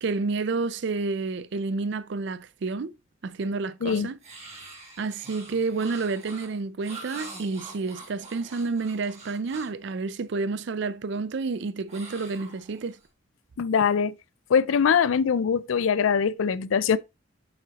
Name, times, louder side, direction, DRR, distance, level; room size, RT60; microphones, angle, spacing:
voice 1, 0.0-2.9 3.2-4.2 5.0-13.0, right 4 dB, 60° right, 0.4 m, -30 dB
sound 1, 4.2-9.8 11.9-13.1, right 3 dB, 35° right, 2.3 m, -45 dB
voice 2, 13.6-14.1 14.5-17.0, left 6 dB, 85° left, 0.4 m, -22 dB
7.2 x 5.7 x 2.9 m
head